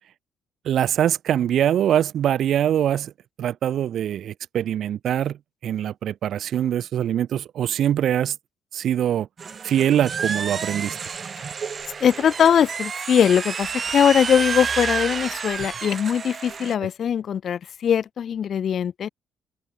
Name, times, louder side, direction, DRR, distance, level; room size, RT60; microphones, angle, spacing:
voice 1, 0.6-3.1 3.4-5.4 5.6-8.3 8.7-9.3 9.6-11.0, right 10 dB, 50° right, 1.1 m, -23 dB
sound 1, 9.4-16.7, right 6 dB, 30° right, 3.7 m, -30 dB
voice 2, 12.0-19.1, left 8 dB, 40° left, 4.6 m, -21 dB
open air
cardioid pair, 160°, 0 cm